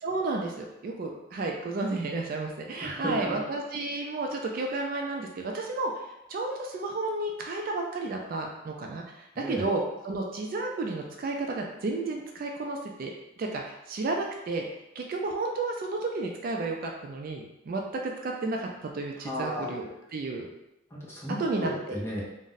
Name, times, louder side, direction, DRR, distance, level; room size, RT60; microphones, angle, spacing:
voice 1, 0.0-14.7 15.0-20.5 21.4-22.0, right 2 dB, 50° right, 1 dB, 0.3 m, -32 dB
voice 2, 2.8-3.4 9.4-9.6 19.2-19.7 20.9-22.2, equal, 15° left, -6 dB, 0.7 m, -34 dB
2.6 x 2.0 x 3.8 m, 0.93 s
head